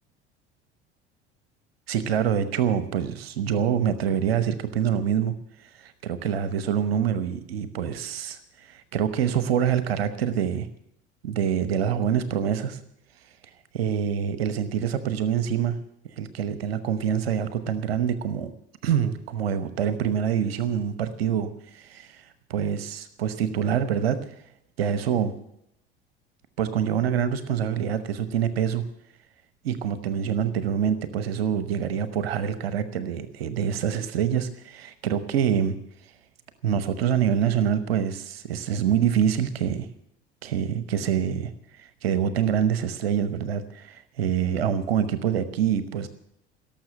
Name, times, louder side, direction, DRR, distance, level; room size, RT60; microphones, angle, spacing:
voice 1, 1.9-5.3 5.6-10.7 11.2-12.8 13.7-15.8 16.2-18.5 18.8-24.4 24.8-25.3 26.6-28.8 29.6-35.8 36.6-39.9 40.4-46.1, right 8 dB, 70° right, 13 dB, 1.0 m, -26 dB
18.0 x 7.1 x 9.7 m, 0.78 s
figure-of-eight pair, 65°, 31 cm